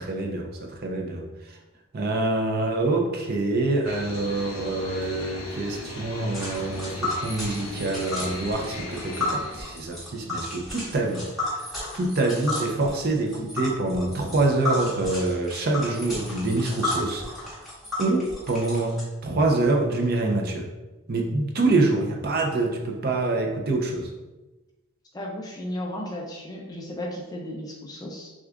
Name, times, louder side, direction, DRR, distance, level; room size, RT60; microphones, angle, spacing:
voice 1, 0.0-1.6 1.9-11.6 11.9-17.5 18.0-20.6 21.1-24.1, right 2 dB, 45° right, 2 dB, 0.5 m, -26 dB
sound 1, 3.9-9.7, left 1 dB, 70° left, 0.8 m, -38 dB
Tick, 6.3-19.0, left 2 dB, ahead, 1.2 m, -33 dB
voice 2, 25.1-28.3, left 1 dB, 15° left, -1 dB, 0.4 m, -34 dB
6.1 x 2.4 x 2.4 m, 1.1 s
head